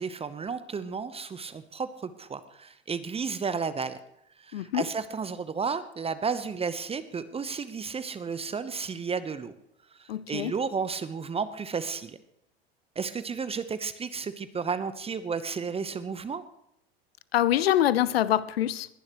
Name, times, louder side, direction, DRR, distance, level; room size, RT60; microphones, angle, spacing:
voice 1, 0.0-4.0 4.4-9.5 9.9-12.2 13.0-16.4, right 5 dB, 20° right, 0.9 m, -33 dB
voice 2, 4.5-4.9 10.1-10.5 17.3-18.9, left 12 dB, 75° left, 0.8 m, -25 dB
20.5 x 11.0 x 3.1 m
hypercardioid pair, 85°, 31 cm